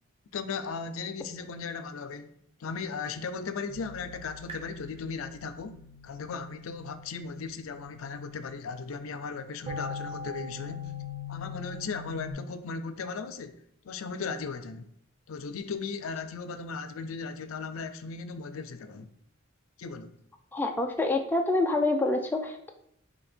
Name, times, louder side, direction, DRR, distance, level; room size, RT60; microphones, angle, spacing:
voice 1, 0.3-2.3 2.6-10.9 11.3-14.9 15.3-19.1 19.8-20.2, left 5 dB, 80° left, 0.4 m, -37 dB
sound 1, 3.7-12.3, left 3 dB, 25° right, 0.9 m, -42 dB
voice 2, 20.5-22.7, left 2 dB, 10° left, 0.4 m, -27 dB
4.3 x 2.9 x 4.2 m
head